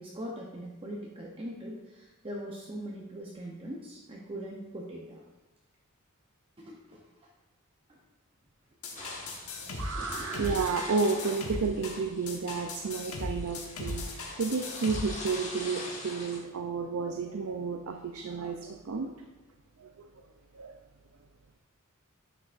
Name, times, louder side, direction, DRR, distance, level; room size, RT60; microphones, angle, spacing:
voice 1, 0.0-5.2 6.6-7.0 10.0-10.3, equal, 25° right, -3 dB, 0.8 m, -41 dB
sound 1, 8.8-15.5, left 2 dB, 80° left, 1.3 m, -38 dB
sound 2, 9.0-16.4, left 2 dB, 35° left, 1.5 m, -44 dB
voice 2, 9.6-14.0 14.4-19.1 19.8-19.9 20.5-20.7, right 4 dB, 75° right, 4 dB, 0.6 m, -31 dB
10.5 x 6.6 x 2.5 m, 1.1 s
head